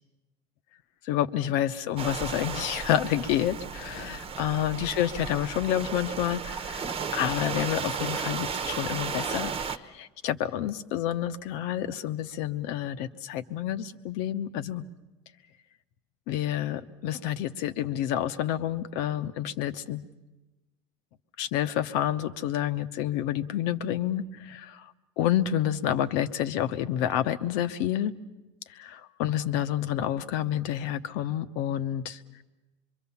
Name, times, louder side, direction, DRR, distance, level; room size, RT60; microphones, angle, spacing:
voice 1, 1.0-14.8 16.3-20.0 21.4-28.1 28.7-32.4, left 11 dB, 75° left, 10 dB, 0.9 m, -29 dB
sound 1, 2.0-9.8, right 6 dB, 40° right, 1.1 m, -34 dB
25.0 x 23.5 x 7.2 m, 1.1 s
supercardioid pair, 85°, 15 cm